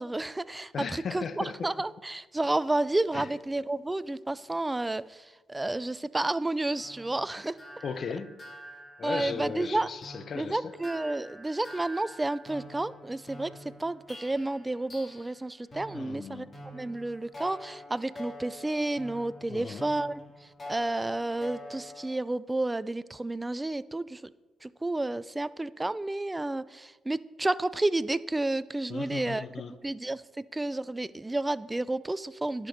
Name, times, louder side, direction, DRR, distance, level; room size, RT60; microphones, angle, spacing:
voice 1, 0.0-7.6 9.0-9.9 10.4-13.5 13.8-16.5 16.7-20.2 20.7-24.2 24.6-29.5 29.8-30.2 30.5-32.7, right 2 dB, 15° right, 0.3 m, -31 dB
voice 2, 0.7-1.7 3.1-3.3 7.8-8.4 9.0-10.8 15.9-16.5 19.5-19.9 28.9-29.7, left 6 dB, 50° left, 0.5 m, -37 dB
sound 1, 6.7-15.4 15.7-22.2, equal, 35° left, 1.9 m, -47 dB
10.0 x 6.0 x 5.1 m
cardioid pair, 90°, 0 cm